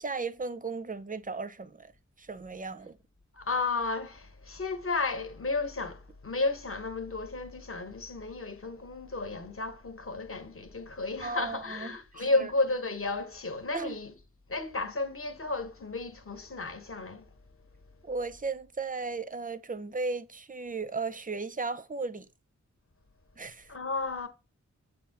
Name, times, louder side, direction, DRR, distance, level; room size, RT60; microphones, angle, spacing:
voice 1, 0.0-1.9 2.2-3.0 11.2-12.5 13.7-14.0 18.0-22.3 23.4-23.7, right 4 dB, 30° right, 0.5 m, -36 dB
voice 2, 3.3-14.1 14.5-17.3 23.7-24.3, left 3 dB, 45° left, 0.9 m, -33 dB
7.1 x 2.6 x 5.7 m
wide cardioid pair, 75°, 30 cm